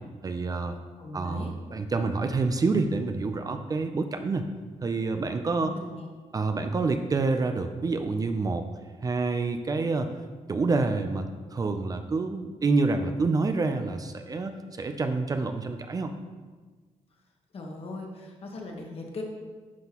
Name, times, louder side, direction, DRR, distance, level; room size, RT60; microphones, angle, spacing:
voice 1, 0.2-0.8 1.1-4.5 4.8-5.7 6.3-8.7 9.0-10.1 10.5-16.1, right 3 dB, 30° right, 7 dB, 0.4 m, -27 dB
voice 2, 1.0-1.5 5.6-6.1 17.5-19.2, left 2 dB, 50° left, 1 dB, 1.3 m, -39 dB
11.0 x 5.8 x 3.0 m, 1.4 s
wide cardioid pair, 145°, 12 cm